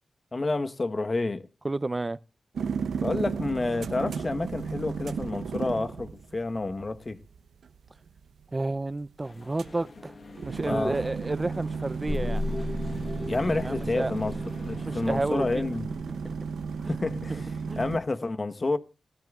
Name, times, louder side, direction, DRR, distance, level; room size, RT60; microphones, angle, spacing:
voice 1, 0.3-1.5 3.0-7.2 10.7-11.0 13.3-15.9 16.8-17.5 17.8-18.8, left 2 dB, 40° left, 1.1 m, -29 dB
voice 2, 1.6-2.2 8.5-10.1 10.4-12.4 13.6-14.3 14.8-15.5 16.2-16.3 16.8-17.0 17.3-17.8, right 2 dB, 35° right, 0.6 m, -31 dB
sound 1, 2.6-18.0, right 5 dB, 85° right, 0.9 m, -35 dB
sound 2, 9.2-15.3, left 3 dB, 60° left, 1.3 m, -49 dB
sound 3, 12.1-16.3, left 2 dB, 10° left, 1.0 m, -35 dB
28.5 x 10.5 x 2.4 m
cardioid pair, 45°, 0 cm